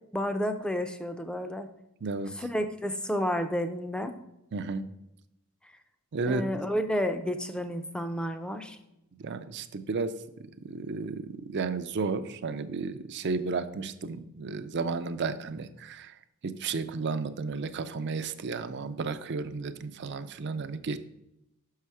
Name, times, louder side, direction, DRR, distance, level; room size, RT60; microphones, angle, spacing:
voice 1, 0.1-1.7 2.4-4.1 6.3-8.8, equal, 5° left, 8 dB, 0.5 m, -31 dB
voice 2, 2.0-2.3 4.5-4.9 6.1-6.5 9.2-10.2 10.6-16.2 16.4-21.0, right 4 dB, 55° right, 11 dB, 0.5 m, -33 dB
6.1 x 5.6 x 4.7 m, 0.87 s
head